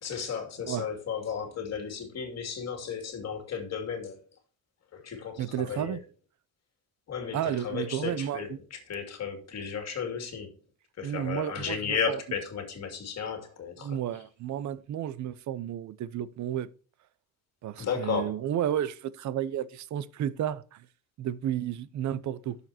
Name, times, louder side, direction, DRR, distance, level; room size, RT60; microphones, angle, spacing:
voice 1, 0.0-4.2 4.9-6.0 7.1-10.5 11.0-14.0 17.8-18.4, left 6 dB, 45° left, 2.6 m, -34 dB
voice 2, 5.4-6.0 7.3-8.4 11.0-12.2 13.8-16.7 17.6-20.8 21.2-22.6, right 10 dB, 50° right, 0.7 m, -32 dB
12.0 x 7.0 x 2.8 m
cardioid pair, 155°, 37 cm